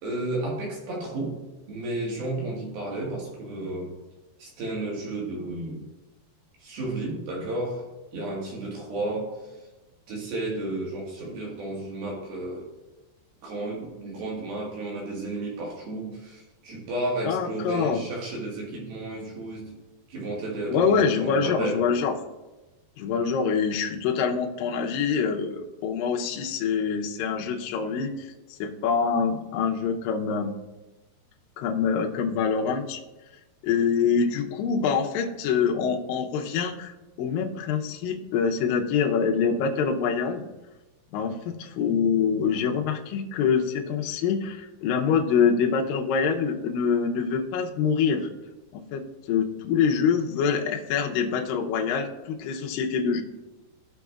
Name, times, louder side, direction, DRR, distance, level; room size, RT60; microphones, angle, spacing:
voice 1, 0.0-1.4 1.7-3.9 4.4-5.8 6.6-7.8 8.1-9.3 10.1-12.6 13.4-19.7 20.1-21.8, right 2 dB, 65° right, -2 dB, 3.3 m, -32 dB
voice 2, 17.3-18.0 20.7-22.1 23.0-28.3 28.6-30.5 31.6-33.0 33.6-36.9 37.2-40.5 41.1-48.3 48.7-49.0 49.3-53.2, left 6 dB, 85° left, 1 dB, 2.0 m, -25 dB
14.5 x 6.2 x 2.4 m, 1.1 s
omnidirectional pair, 5.0 m